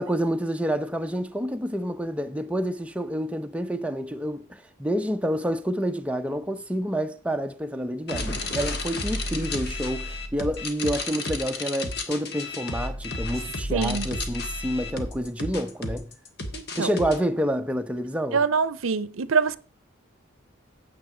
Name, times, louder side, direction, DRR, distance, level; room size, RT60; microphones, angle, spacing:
voice 1, 0.0-16.1 16.8-18.4, equal, 5° right, 0.6 m, -28 dB
sound 1, 8.1-17.2, left 2 dB, 50° left, 1.4 m, -32 dB
voice 2, 13.7-14.1 16.5-16.9 18.3-19.6, right 5 dB, 80° right, 0.6 m, -24 dB
9.4 x 7.5 x 4.9 m
head